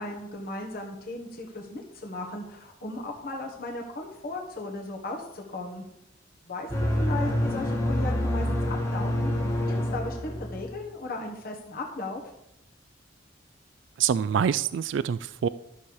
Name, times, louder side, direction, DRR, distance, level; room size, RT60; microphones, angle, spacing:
voice 1, 0.0-5.8 6.5-9.3 9.9-12.2, left 2 dB, 50° left, 0 dB, 1.4 m, -36 dB
sound 1, 6.7-10.8, left 1 dB, 15° left, 1.6 m, -27 dB
voice 2, 14.0-15.5, right 8 dB, 70° right, 15 dB, 0.3 m, -25 dB
12.0 x 7.1 x 4.8 m, 0.85 s
head